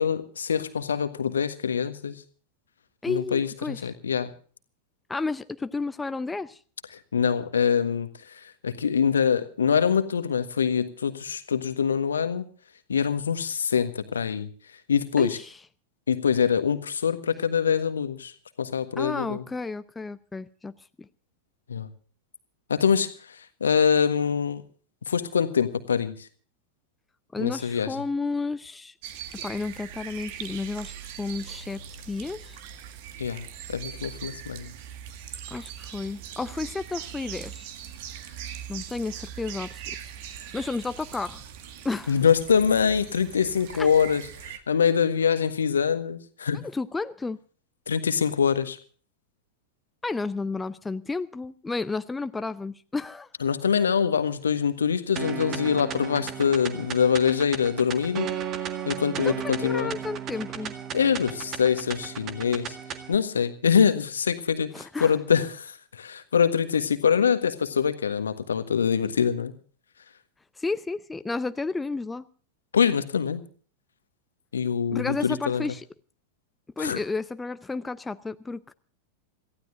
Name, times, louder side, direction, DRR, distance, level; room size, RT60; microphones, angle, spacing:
voice 1, 0.0-2.2 3.1-4.3 7.1-12.4 12.9-14.5 14.9-15.4 16.1-18.3 18.6-19.4 21.7-21.9 22.7-24.6 25.1-26.3 27.4-27.9 33.2-34.7 42.1-46.6 47.9-48.8 53.4-58.3 58.9-59.9 60.9-62.8 63.1-69.5 72.7-73.4 74.5-75.7 76.8-77.0, left 7 dB, 70° left, 11 dB, 1.5 m, -24 dB
voice 2, 3.0-3.9 5.1-6.6 15.2-15.6 19.0-21.1 27.3-28.9 29.3-32.6 35.5-37.7 38.7-39.8 40.5-41.4 41.8-42.2 43.8-43.9 46.6-47.4 50.0-53.3 59.2-60.7 64.7-65.1 70.6-72.2 74.9-75.8 76.8-78.7, left 3 dB, 10° left, 13 dB, 0.6 m, -32 dB
sound 1, 29.0-44.6, right 9 dB, 50° right, 1.8 m, -41 dB
sound 2, 55.2-63.2, right 9 dB, 30° right, 1.8 m, -35 dB
27.0 x 15.0 x 2.6 m, 0.42 s
figure-of-eight pair, 90°, 0 cm